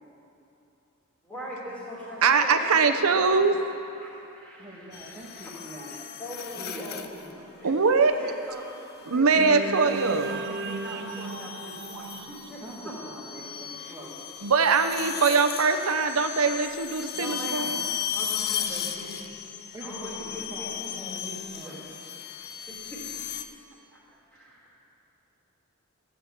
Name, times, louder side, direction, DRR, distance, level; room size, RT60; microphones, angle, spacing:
voice 1, 1.2-3.4 4.0-5.5 5.9-7.0 7.5-12.9 13.8-13.9 17.1-17.7 18.1-19.3 19.8-21.8 22.7-23.0 24.3-24.7, equal, 5° left, -7 dB, 3.0 m, -41 dB
voice 2, 2.2-3.5 7.6-8.1 9.1-10.3 14.4-17.8, right 4 dB, 85° right, 7 dB, 0.8 m, -22 dB
voice 3, 4.6-6.0 6.5-7.5 11.9-14.1 19.7-21.1 21.5-21.9 23.9-24.2, right 1 dB, 15° right, -6 dB, 2.2 m, -44 dB
sound 1, 4.9-7.3 8.7-9.1 9.9-23.4, left 9 dB, 45° left, 0.6 m, -36 dB
sound 2, 9.4-13.7, right 4 dB, 50° right, 0.5 m, -36 dB
14.0 x 8.1 x 7.3 m, 2.9 s
head